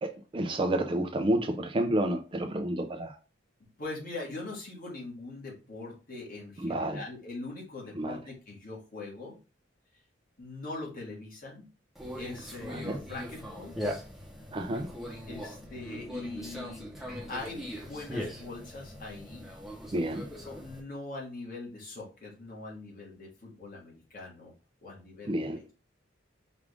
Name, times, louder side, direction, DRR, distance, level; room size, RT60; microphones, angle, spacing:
voice 1, 0.0-3.2 6.6-7.0 8.0-8.2 12.7-13.0 14.5-14.9 19.9-20.3 25.2-25.6, right 1 dB, 25° right, 0.4 m, -30 dB
voice 2, 3.8-9.4 10.4-11.7 12.1-13.8 15.3-16.8 17.3-19.5 20.3-24.5 24.8-25.6, left 2 dB, 45° left, 1.6 m, -42 dB
Conversation, 12.0-20.8, equal, ahead, 0.8 m, -40 dB
4.9 x 2.4 x 3.4 m
head